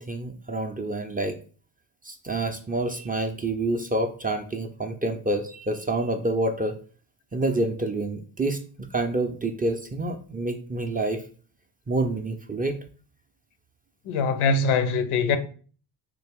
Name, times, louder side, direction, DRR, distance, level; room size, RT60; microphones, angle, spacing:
voice 1, 0.0-1.4 2.0-6.7 7.3-11.2 11.9-12.8, right 2 dB, 20° right, 0.3 m, -28 dB
voice 2, 14.1-15.4, left 4 dB, 80° left, 0.7 m, -22 dB
3.3 x 2.5 x 3.4 m
cardioid pair, 75°, 49 cm